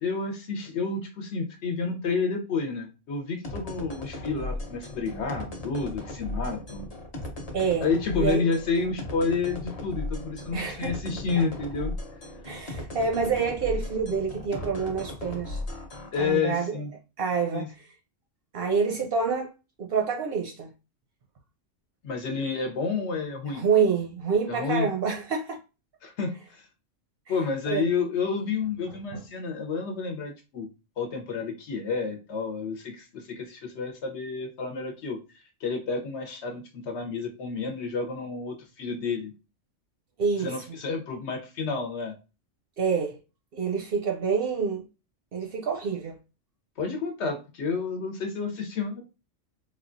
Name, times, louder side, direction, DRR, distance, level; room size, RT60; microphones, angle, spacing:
voice 1, 0.0-6.9 7.8-11.9 16.1-16.9 17.5-17.7 22.0-23.6 24.5-24.9 26.0-26.7 27.3-30.7 31.0-35.2 35.6-39.3 40.4-42.1 46.8-49.0, left 4 dB, 65° left, 1.0 m, -30 dB
sound 1, 3.4-16.3, left 2 dB, 40° left, 0.6 m, -37 dB
voice 2, 7.5-7.9 8.2-8.5 10.5-11.0 11.4-11.5 12.4-15.6 16.2-16.8 17.2-17.9 18.5-19.5 19.8-20.7 23.5-25.6 27.7-27.8 29.1-29.2 40.2-40.5 42.8-43.2 43.5-44.9 45.3-46.2, right 5 dB, 60° right, 0.6 m, -27 dB
3.5 x 2.2 x 2.5 m
omnidirectional pair, 1.3 m